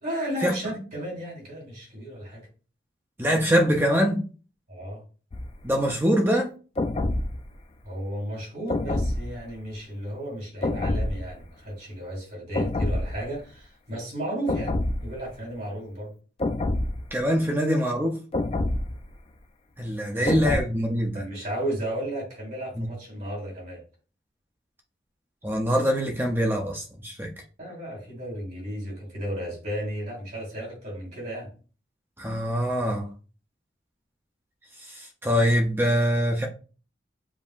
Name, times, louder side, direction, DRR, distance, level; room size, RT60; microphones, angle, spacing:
voice 1, 0.0-2.4 4.7-5.0 7.8-14.7 15.0-16.1 20.1-20.3 21.0-23.8 27.6-31.5, right 1 dB, 50° right, -3 dB, 2.5 m, -34 dB
voice 2, 3.2-4.2 5.6-6.5 17.1-18.2 19.8-21.3 22.8-22.9 25.4-27.3 32.2-33.1 34.9-36.5, equal, 10° right, 1 dB, 0.6 m, -23 dB
sound 1, 5.3-5.6 6.8-7.5 8.7-9.5 10.6-11.4 12.5-13.3 14.5-15.3 16.4-17.2 18.3-19.1 20.3-20.6, left 2 dB, 30° left, 0.3 m, -27 dB
7.2 x 2.7 x 2.4 m, 0.36 s
head